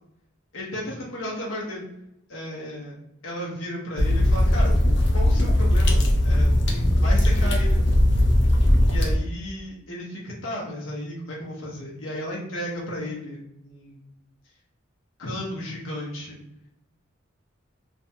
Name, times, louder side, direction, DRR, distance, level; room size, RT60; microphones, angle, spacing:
voice 1, 0.5-1.8 2.3-2.9 3.2-4.8 5.1-7.8 8.9-14.0 15.2-16.4, equal, 80° left, -4 dB, 0.8 m, -34 dB
sound 1, 4.0-9.2, left 1 dB, 55° left, 0.5 m, -19 dB
2.5 x 2.2 x 2.6 m, 0.81 s
head